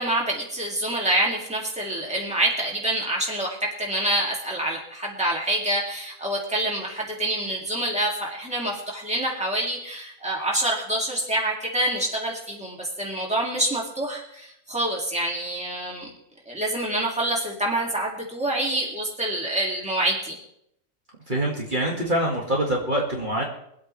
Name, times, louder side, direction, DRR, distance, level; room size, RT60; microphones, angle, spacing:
voice 1, 0.0-16.1 16.5-20.4, right 1 dB, 5° right, -3 dB, 2.5 m, -26 dB
voice 2, 21.3-23.4, right 1 dB, 35° right, -3 dB, 2.2 m, -25 dB
24.0 x 8.4 x 3.3 m, 0.73 s
omnidirectional pair, 1.4 m